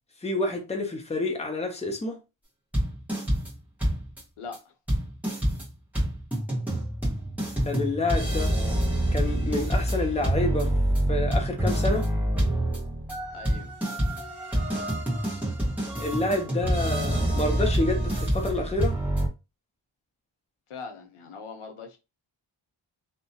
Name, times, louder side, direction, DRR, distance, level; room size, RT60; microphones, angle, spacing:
voice 1, 0.2-2.2 7.6-8.5 9.1-10.7 11.1-12.1 16.0-19.0, left 2 dB, 15° left, 0.6 m, -28 dB
sound 1, 2.7-3.5 3.8-4.2 4.5-4.6 4.9-19.3, right 1 dB, 5° right, 1.2 m, -26 dB
voice 2, 4.4-4.7 13.3-13.7 20.7-22.0, left 5 dB, 90° left, 0.7 m, -41 dB
2.8 x 2.2 x 2.7 m
wide cardioid pair, 95°, 49 cm